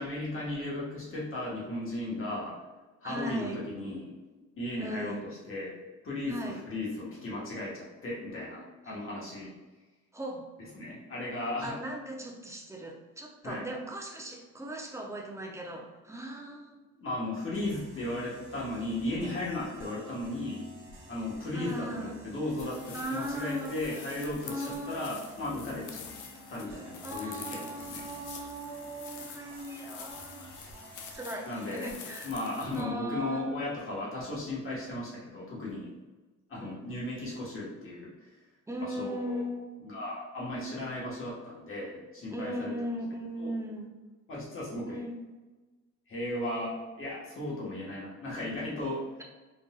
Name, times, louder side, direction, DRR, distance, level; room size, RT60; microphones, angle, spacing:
voice 1, 0.0-2.6 3.0-4.1 4.6-5.8 6.0-9.5 10.7-11.8 13.4-13.7 17.0-20.7 21.1-26.0 26.5-28.1 31.4-31.9 32.2-35.9 36.5-38.3 38.8-39.4 39.8-42.7 43.4-43.5 44.3-45.0 46.1-49.1, left 1 dB, 45° left, -5 dB, 1.4 m, -36 dB
voice 2, 3.0-3.6 4.8-5.2 6.3-6.6 8.8-9.0 10.1-10.5 11.6-16.8 21.5-22.2 22.9-23.8 24.4-25.1 27.0-30.5 31.1-32.3 32.7-33.5 36.6-36.8 38.7-39.7 42.3-43.9 44.9-45.2, right 1 dB, 10° right, 0 dB, 0.6 m, -38 dB
sound 1, 17.5-32.4, right 1 dB, 40° right, 1.1 m, -52 dB
sound 2, 22.6-32.8, left 7 dB, 80° left, 0.5 m, -47 dB
3.9 x 2.5 x 2.3 m, 1.2 s
cardioid pair, 90°, 30 cm